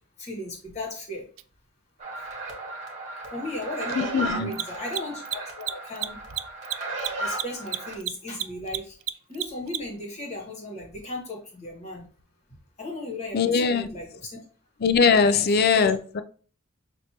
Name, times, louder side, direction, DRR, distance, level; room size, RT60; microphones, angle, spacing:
voice 1, 0.2-1.3 2.2-2.3 3.3-6.2 7.2-8.9 9.3-12.1 12.8-14.4 15.3-15.9, left 2 dB, 35° left, 0 dB, 1.5 m, -36 dB
Mechanisms, 1.4-1.5 4.4-10.0, right 14 dB, 70° right, 0.3 m, -31 dB
sound 1, 2.0-7.9, right 2 dB, 35° right, 1.4 m, -35 dB
voice 2, 3.9-4.5 13.3-13.9 14.8-16.2, left 5 dB, 50° left, 11 dB, 0.4 m, -21 dB
6.2 x 2.6 x 2.9 m, 0.40 s
head